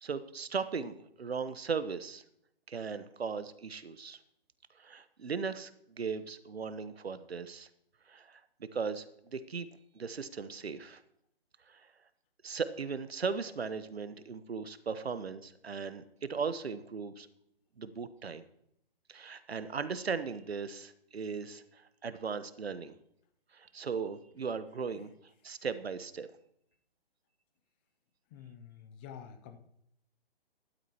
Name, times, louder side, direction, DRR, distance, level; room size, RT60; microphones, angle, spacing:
voice 1, 0.0-2.2 2.7-4.2 4.8-5.7 6.0-7.7 8.1-9.7 9.9-11.0 11.7-11.9 12.4-17.3 17.8-18.4 19.1-23.0 23.5-25.1 25.4-26.3, right 5 dB, 85° right, 13 dB, 1.1 m, -37 dB
voice 2, 28.3-29.6, left 8 dB, 10° left, 9 dB, 0.4 m, -49 dB
13.5 x 12.0 x 2.9 m, 0.76 s
figure-of-eight pair, 140°, 30 cm